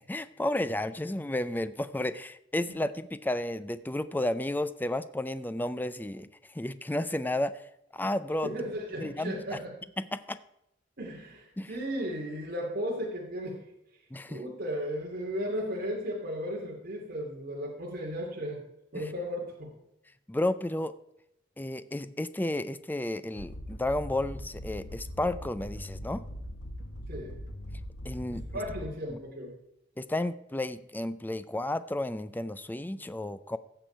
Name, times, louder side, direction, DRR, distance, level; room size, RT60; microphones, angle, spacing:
voice 1, 0.1-6.3 6.5-7.6 7.9-8.5 9.0-9.6 10.0-10.4 11.6-11.7 14.1-14.4 18.9-19.0 20.3-20.9 21.6-26.2 28.0-28.4 30.0-33.6, left 1 dB, 10° left, 13 dB, 0.5 m, -32 dB
voice 2, 8.4-9.7 11.0-13.6 14.3-18.6 18.9-19.7 27.1-27.4 28.3-29.5, equal, 50° right, -2 dB, 2.6 m, -35 dB
sound 1, 23.3-29.2, equal, 75° left, 1.5 m, -41 dB
16.5 x 7.0 x 4.5 m, 0.84 s
head